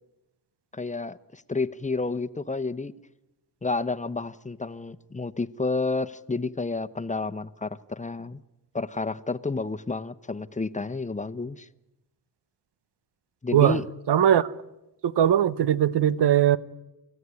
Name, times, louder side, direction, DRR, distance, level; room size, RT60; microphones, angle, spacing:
voice 1, 0.7-2.9 3.6-8.4 8.7-11.7 13.4-13.9, left 3 dB, 20° left, 0.9 m, -30 dB
voice 2, 14.1-14.5 15.0-16.6, right 10 dB, 80° right, 0.9 m, -20 dB
27.5 x 14.5 x 9.7 m
cardioid pair, 75°, 40 cm